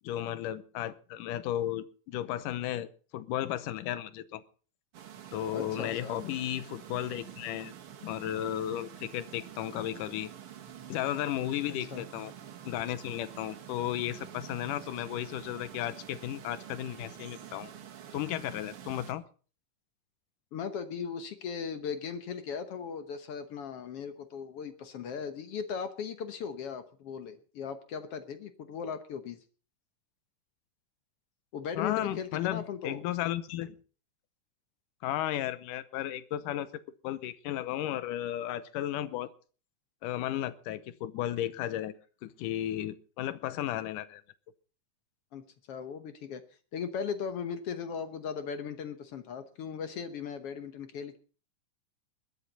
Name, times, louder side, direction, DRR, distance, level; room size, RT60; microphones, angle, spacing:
voice 1, 0.0-4.4 5.3-7.7 8.0-10.3 10.9-12.3 12.7-17.7 18.1-19.2 31.8-33.8 35.0-39.3 40.0-41.9 42.2-44.2, left 12 dB, 85° left, 15 dB, 2.4 m, -34 dB
sound 1, 4.9-19.1, right 9 dB, 50° right, 2.1 m, -48 dB
voice 2, 5.5-6.2 11.9-12.0 20.5-29.4 31.5-33.0 45.3-46.4 46.7-51.2, left 6 dB, 60° left, 9 dB, 1.6 m, -38 dB
21.0 x 11.0 x 4.1 m, 0.39 s
omnidirectional pair, 3.7 m